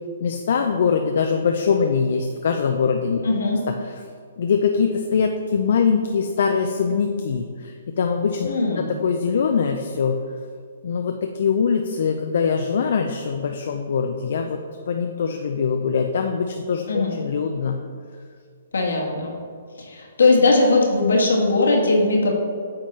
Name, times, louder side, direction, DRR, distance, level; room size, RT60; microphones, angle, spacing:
voice 1, 0.2-3.2 4.4-8.5 8.8-10.2 10.8-14.6 14.9-17.8, left 6 dB, 65° left, 4 dB, 0.4 m, -22 dB
voice 2, 3.2-3.6 8.5-8.9 16.9-17.1 18.7-19.3 19.8-22.4, left 3 dB, 80° left, 0 dB, 1.3 m, -19 dB
8.7 x 3.7 x 3.2 m, 2.2 s
hypercardioid pair, 140°, 0 cm